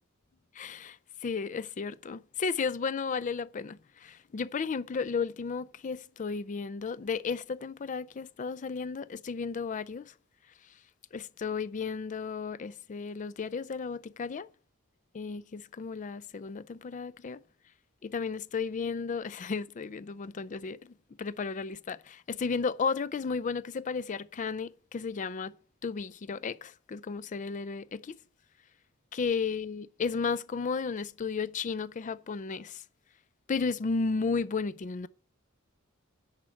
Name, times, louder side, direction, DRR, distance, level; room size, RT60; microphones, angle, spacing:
voice 1, 0.5-1.0 1.2-10.1 11.1-14.5 15.1-17.4 18.0-20.9 21.2-25.5 25.8-28.2 29.1-32.8 33.5-35.1, left 5 dB, 35° left, 0.4 m, -34 dB
10.5 x 4.5 x 7.4 m
head